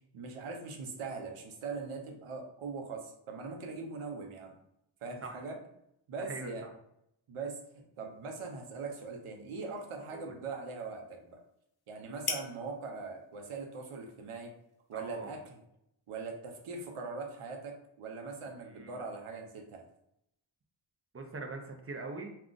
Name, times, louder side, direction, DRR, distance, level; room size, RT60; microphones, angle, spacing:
voice 1, 0.1-4.5 5.0-5.6 6.1-6.6 7.3-7.6 8.0-11.4 11.9-14.5 14.9-15.6 16.1-19.8, right 4 dB, 90° right, 2 dB, 0.7 m, -41 dB
voice 2, 6.2-6.7 10.1-10.3 14.9-15.4 18.7-19.0 21.1-22.3, right 3 dB, 30° right, 4 dB, 0.6 m, -42 dB
sound 1, 7.9-15.7, left 5 dB, 50° left, 0.6 m, -47 dB
2.4 x 2.3 x 3.7 m, 0.77 s
cardioid pair, 60°, 49 cm